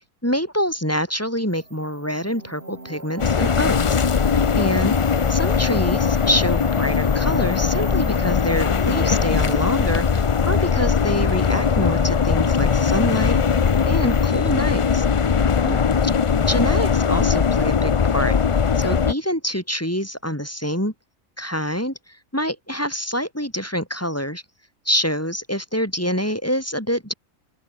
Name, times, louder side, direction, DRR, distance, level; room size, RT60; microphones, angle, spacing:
voice 1, 0.2-4.0 4.6-5.0 5.3-13.4 13.9-15.1 15.6-15.8 16.5-18.4 18.8-20.9 21.4-21.9 22.3-24.4 24.9-27.1, equal, 10° left, 7.0 m, -26 dB
sound 1, 1.5-14.3, right 2 dB, 45° right, 4.6 m, -39 dB
sound 2, 3.2-19.1, left 6 dB, 45° left, 0.4 m, -20 dB
open air
omnidirectional pair, 1.4 m